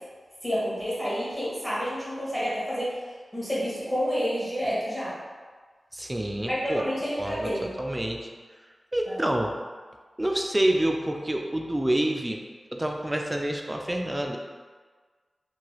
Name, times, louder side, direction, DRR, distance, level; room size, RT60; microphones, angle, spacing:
voice 1, 0.4-2.9 3.3-5.1 6.4-7.7 9.1-9.2, equal, 5° left, -9 dB, 1.2 m, -29 dB
voice 2, 5.9-6.8 7.2-8.2 8.9-9.5 10.2-12.4 12.7-14.4, right 1 dB, 20° right, 2 dB, 0.4 m, -27 dB
3.1 x 2.9 x 2.3 m, 1.5 s
cardioid pair, 45°, 0 cm